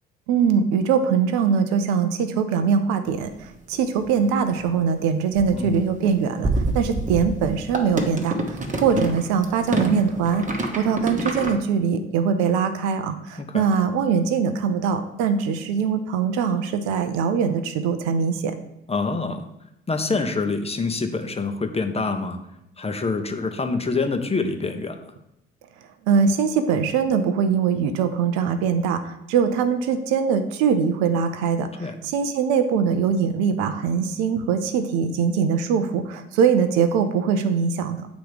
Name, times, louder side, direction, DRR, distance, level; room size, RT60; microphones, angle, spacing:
voice 1, 0.3-10.4 10.8-18.5 26.1-38.1, right 6 dB, 75° right, 9 dB, 0.6 m, -22 dB
sound 1, 3.1-3.2 3.7-4.3 4.6-4.7 5.1-11.5, right 2 dB, 25° right, 1.2 m, -27 dB
voice 2, 18.9-19.4 19.9-22.4 22.8-25.0 31.8-32.0, left 3 dB, 20° left, 6 dB, 0.9 m, -26 dB
7.9 x 3.0 x 5.0 m, 0.83 s
hypercardioid pair, 55°, 29 cm